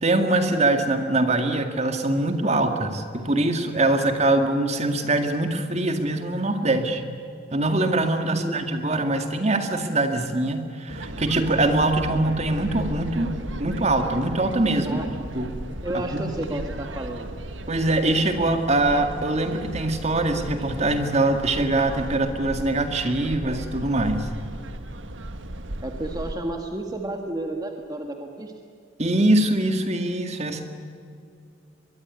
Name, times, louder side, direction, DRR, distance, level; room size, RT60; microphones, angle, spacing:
voice 1, 0.0-7.1 7.5-15.0 15.3-15.5 15.9-16.2 17.7-24.3 29.0-30.6, right 2 dB, 35° right, 6 dB, 2.1 m, -23 dB
voice 2, 8.2-8.6 14.8-15.0 15.8-17.3 25.8-28.5, right 1 dB, 20° right, 3 dB, 1.7 m, -31 dB
sound 1, 10.9-26.3, right 1 dB, 90° right, 1.6 m, -36 dB
23.0 x 22.5 x 9.7 m, 2.4 s
head